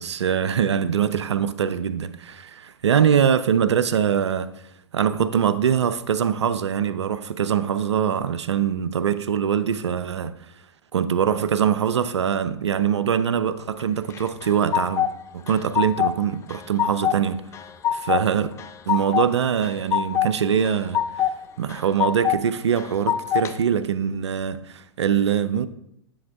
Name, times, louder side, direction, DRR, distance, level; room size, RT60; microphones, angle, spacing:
voice 1, 0.0-4.5 4.9-10.3 10.9-15.1 15.3-17.4 17.9-18.5 18.9-21.3 21.6-25.7, right 8 dB, 80° right, 0.4 m, -23 dB
sound 1, 14.1-15.1 15.5-16.2 16.5-17.2 17.5-18.2 18.6-19.3 19.6-20.3 20.7-21.3 21.7-22.4 22.8-23.5, left 10 dB, 20° left, 0.4 m, -23 dB
9.3 x 3.4 x 3.6 m
hypercardioid pair, 105°, 14 cm